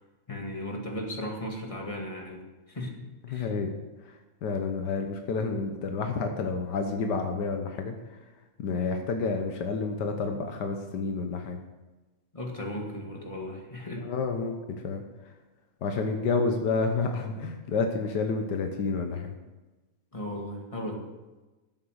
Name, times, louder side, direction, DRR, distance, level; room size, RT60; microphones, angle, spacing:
voice 1, 0.3-3.5 12.3-14.1 20.1-21.0, left 1 dB, 15° left, 0 dB, 1.5 m, -36 dB
voice 2, 3.3-3.7 4.4-8.2 8.6-11.6 13.9-15.0 15.8-19.3, left 4 dB, 75° left, 5 dB, 0.9 m, -29 dB
13.5 x 7.9 x 6.4 m, 1.1 s
omnidirectional pair, 3.4 m